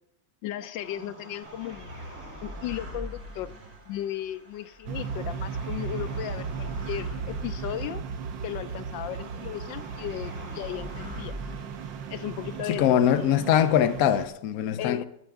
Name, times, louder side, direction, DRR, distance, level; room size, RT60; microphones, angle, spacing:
voice 1, 0.4-2.0 2.4-3.5 3.9-8.0 8.4-11.4 12.1-13.3 14.8-15.1, left 12 dB, 80° left, 1.3 m, -35 dB
sound 1, 0.8-13.1, equal, 40° right, 4.4 m, -43 dB
sound 2, 1.4-4.0 5.3-7.8 9.8-12.3, right 2 dB, 60° right, 2.8 m, -52 dB
sound 3, 4.9-14.3, right 6 dB, 80° right, 1.5 m, -36 dB
voice 2, 12.7-15.0, left 10 dB, 60° left, 1.0 m, -22 dB
19.0 x 8.9 x 3.5 m
omnidirectional pair, 2.0 m